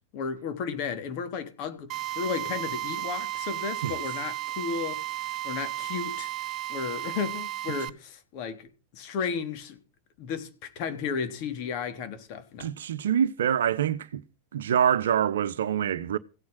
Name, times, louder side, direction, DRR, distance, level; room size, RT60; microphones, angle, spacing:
voice 1, 0.1-5.0 5.4-6.3 6.7-8.7 8.9-9.8 10.2-12.7, left 6 dB, 45° left, 3.5 m, -33 dB
Drill, 1.9-7.9, right 15 dB, 40° right, 1.0 m, -34 dB
voice 2, 12.6-14.2 14.5-16.2, right 9 dB, 60° right, 0.9 m, -25 dB
16.5 x 9.5 x 6.2 m
figure-of-eight pair, 90°, 0 cm